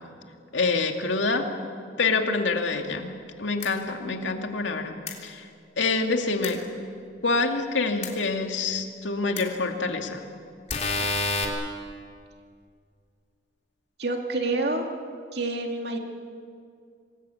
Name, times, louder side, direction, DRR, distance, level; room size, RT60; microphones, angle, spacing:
voice 1, 0.5-1.5 2.0-5.5 5.8-6.6 7.2-10.2, left 3 dB, 85° left, 4 dB, 2.4 m, -26 dB
sound 1, 3.6-3.7 5.1-5.2 6.4-6.5 8.0-8.1 9.4-9.5 10.7-11.4, left 3 dB, 35° left, 3.4 m, -27 dB
voice 2, 14.0-14.8 15.3-16.0, right 2 dB, 60° right, 3 dB, 2.4 m, -28 dB
27.0 x 20.0 x 8.5 m, 2.3 s
head